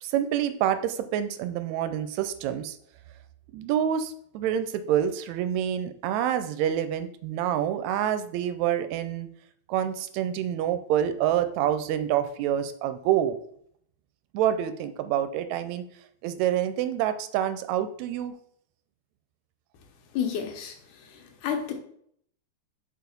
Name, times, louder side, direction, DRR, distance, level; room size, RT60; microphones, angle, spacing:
voice 1, 0.0-2.8 3.5-9.3 9.7-13.4 14.3-15.8 16.2-18.4, right 10 dB, 80° right, 11 dB, 1.7 m, -27 dB
voice 2, 20.1-21.7, left 8 dB, 90° left, 5 dB, 2.5 m, -31 dB
4.8 x 4.6 x 5.1 m, 0.66 s
omnidirectional pair, 3.5 m